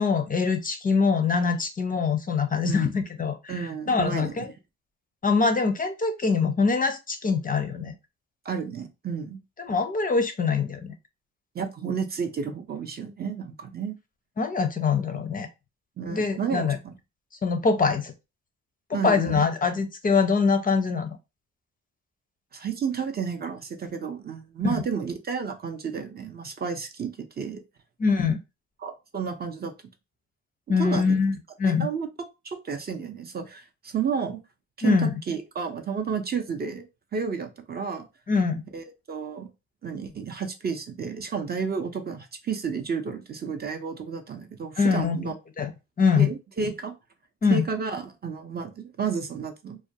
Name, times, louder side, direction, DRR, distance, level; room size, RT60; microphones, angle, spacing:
voice 1, 0.0-4.5 5.2-7.9 9.6-10.8 14.4-15.5 16.1-16.8 17.4-18.1 18.9-21.1 24.6-24.8 28.0-28.4 30.7-31.9 34.8-35.1 38.3-38.6 44.8-45.7 46.0-46.3 47.4-47.6, left 5 dB, 30° left, 7 dB, 0.4 m, -24 dB
voice 2, 3.5-4.4 8.4-9.4 11.5-14.0 16.0-16.9 18.9-19.3 22.5-27.6 28.8-29.7 30.8-31.1 31.8-32.1 32.4-34.4 34.8-36.9 37.1-38.0 38.7-39.5 39.8-45.3 46.2-46.9 47.5-49.8, right 6 dB, 35° right, 6 dB, 0.4 m, -31 dB
2.4 x 2.2 x 2.6 m, 0.25 s
cardioid pair, 90°, 30 cm